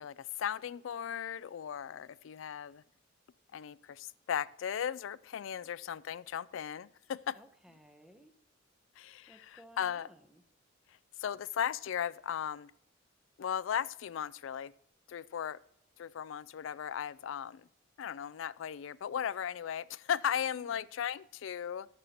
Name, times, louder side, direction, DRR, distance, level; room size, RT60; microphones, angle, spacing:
voice 1, 0.0-2.8 3.5-7.4 9.0-10.1 11.2-12.7 13.4-14.7 15.1-15.6 16.0-17.6 18.0-21.9, left 8 dB, 70° left, 20 dB, 0.3 m, -37 dB
voice 2, 7.3-8.3 9.3-10.4 20.5-20.7, equal, 5° right, 7 dB, 0.8 m, -58 dB
19.5 x 6.7 x 2.9 m, 0.79 s
head